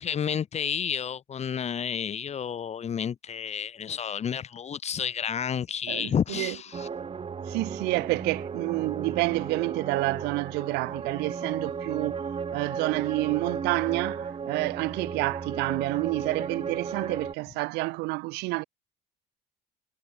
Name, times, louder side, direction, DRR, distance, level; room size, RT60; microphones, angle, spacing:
voice 1, 0.0-6.9, left 8 dB, 40° left, 1.4 m, -30 dB
voice 2, 5.9-6.5 7.5-12.2 12.5-18.6, right 24 dB, 85° right, 0.6 m, -29 dB
sound 1, 6.7-17.3, right 6 dB, 35° right, 3.1 m, -35 dB
cardioid pair, 100°, 17 cm